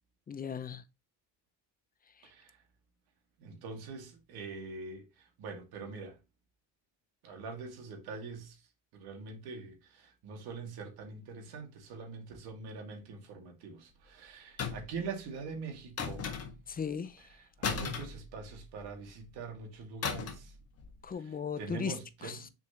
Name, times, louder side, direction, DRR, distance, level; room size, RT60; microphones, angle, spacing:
voice 1, 0.3-0.8 16.7-17.3 21.0-21.9 22.2-22.4, left 6 dB, 25° left, 0.6 m, -37 dB
voice 2, 2.2-2.6 3.4-6.2 7.2-8.6 8.9-16.4 17.6-20.5 21.2-22.5, right 4 dB, 70° right, 2.3 m, -44 dB
sound 1, 14.6-15.0 16.0-16.7 17.6-18.8 20.0-20.5 20.8-21.0, left 6 dB, 40° left, 1.5 m, -36 dB
6.7 x 5.1 x 2.9 m
cardioid pair, 120°, 39 cm